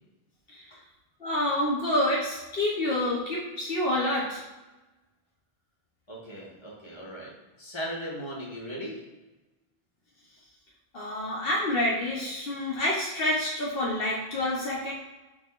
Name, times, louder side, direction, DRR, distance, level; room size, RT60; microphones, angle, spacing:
voice 1, 1.2-4.4 10.9-14.9, left 1 dB, 65° left, -3 dB, 1.1 m, -28 dB
voice 2, 6.1-7.3 7.6-9.0, equal, 25° left, -5 dB, 1.6 m, -38 dB
10.5 x 3.6 x 2.5 m, 1.1 s
omnidirectional pair, 1.0 m